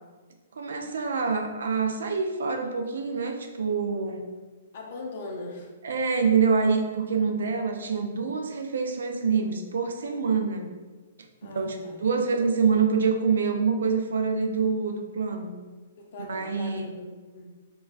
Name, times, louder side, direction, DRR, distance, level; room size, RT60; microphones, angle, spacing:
voice 1, 0.6-4.3 5.8-10.7 11.4-15.5 16.3-16.8, right 5 dB, 60° right, 5 dB, 0.3 m, -26 dB
voice 2, 4.7-5.7 11.4-12.0 16.0-17.7, left 2 dB, 45° left, 0 dB, 0.5 m, -40 dB
3.0 x 2.3 x 2.3 m, 1.3 s
figure-of-eight pair, 115°, 0 cm